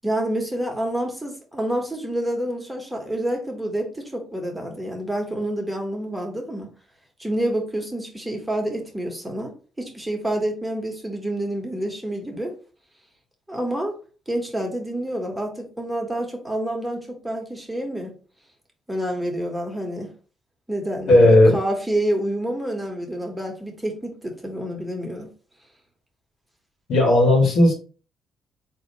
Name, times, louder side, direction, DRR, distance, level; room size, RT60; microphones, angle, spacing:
voice 1, 0.0-6.7 7.2-9.5 9.8-12.5 13.5-13.9 14.3-18.1 18.9-20.1 20.7-25.3, right 1 dB, 10° right, 1.2 m, -28 dB
voice 2, 21.1-21.6 26.9-27.7, left 1 dB, 70° left, 1.7 m, -14 dB
3.9 x 2.8 x 4.0 m
cardioid pair, 90°, 0 cm